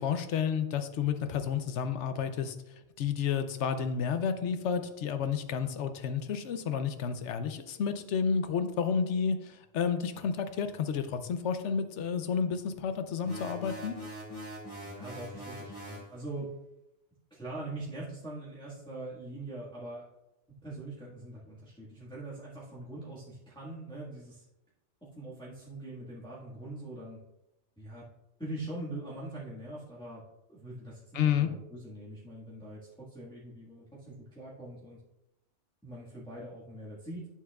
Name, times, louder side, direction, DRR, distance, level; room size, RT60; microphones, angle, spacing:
voice 1, 0.0-2.6 3.0-13.9 31.1-31.5, left 7 dB, 75° left, 9 dB, 0.9 m, -31 dB
sound 1, 13.2-16.1, equal, 35° left, 2.8 m, -42 dB
voice 2, 14.8-16.5 17.3-20.1 20.6-24.4 25.1-27.2 27.8-28.0 28.4-30.2 30.5-35.0 35.8-37.3, right 2 dB, 5° left, -9 dB, 1.5 m, -42 dB
11.0 x 6.3 x 2.3 m, 0.91 s
omnidirectional pair, 1.2 m